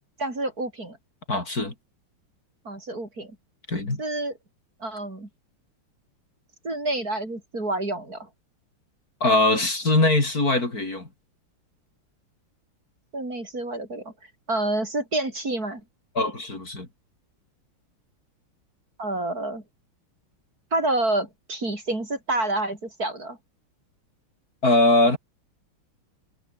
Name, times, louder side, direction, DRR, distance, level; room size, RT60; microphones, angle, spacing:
voice 1, 0.2-1.0 2.6-3.3 4.0-4.3 4.8-5.3 6.6-8.3 13.1-14.1 14.5-15.8 19.0-19.6 20.7-23.4, right 2 dB, 40° right, 6.0 m, -28 dB
voice 2, 1.3-1.7 3.7-4.0 9.2-11.1 16.1-16.9 24.6-25.2, left 2 dB, 40° left, 5.1 m, -21 dB
omnidirectional pair, 2.4 m